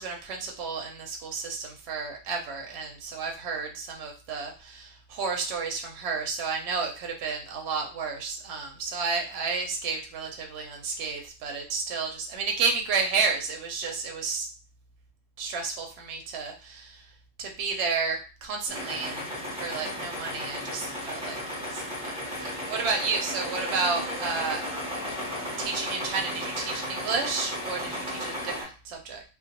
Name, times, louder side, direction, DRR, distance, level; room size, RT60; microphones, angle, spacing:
voice 1, 0.0-14.5 15.4-17.0 17.4-19.3 19.6-24.6 25.6-29.2, right 4 dB, 60° right, 2 dB, 0.8 m, -31 dB
sound 1, 18.7-28.6, left 1 dB, 10° right, 0.4 m, -34 dB
2.2 x 2.0 x 2.8 m, 0.35 s
omnidirectional pair, 1.4 m